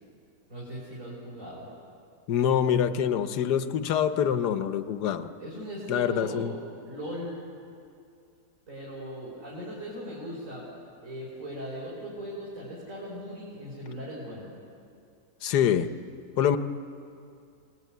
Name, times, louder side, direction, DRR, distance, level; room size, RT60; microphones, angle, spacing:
voice 1, 0.5-1.7 5.4-6.5 6.8-7.4 8.7-10.7 11.0-14.5, equal, 50° right, -8 dB, 6.2 m, -38 dB
voice 2, 2.3-5.3 5.9-6.5 15.4-15.9 16.4-16.6, left 9 dB, 70° left, 10 dB, 1.5 m, -25 dB
27.5 x 19.5 x 9.5 m, 2.4 s
omnidirectional pair, 1.8 m